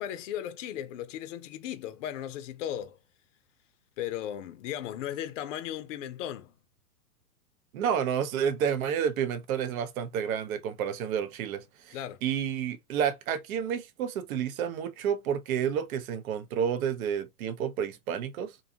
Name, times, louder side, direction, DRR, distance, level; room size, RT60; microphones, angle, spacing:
voice 1, 0.0-3.0 4.0-6.5 11.9-12.2, left 11 dB, 55° left, 0.5 m, -36 dB
voice 2, 7.7-18.5, right 8 dB, 65° right, 0.6 m, -30 dB
2.6 x 2.2 x 2.6 m
hypercardioid pair, 120°, 46 cm